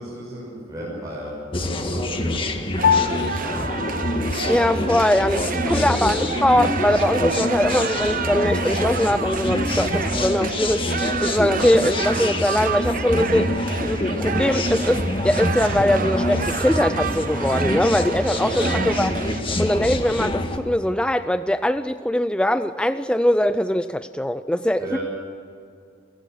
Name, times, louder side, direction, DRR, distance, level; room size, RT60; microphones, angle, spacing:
voice 1, 0.0-4.0 5.0-5.1 5.4-6.2 18.4-18.8 24.8-25.0, right 1 dB, 20° right, -7 dB, 6.5 m, -34 dB
sound 1, 1.5-20.6, left 1 dB, 25° left, 1.9 m, -26 dB
Piano, 2.8-12.4, left 7 dB, 75° left, 1.8 m, -31 dB
sound 2, 2.8-19.4, right 6 dB, 45° right, 1.0 m, -30 dB
voice 2, 4.5-19.1 19.6-25.0, left 1 dB, 5° left, 11 dB, 0.4 m, -21 dB
30.0 x 16.5 x 6.6 m, 2.4 s
head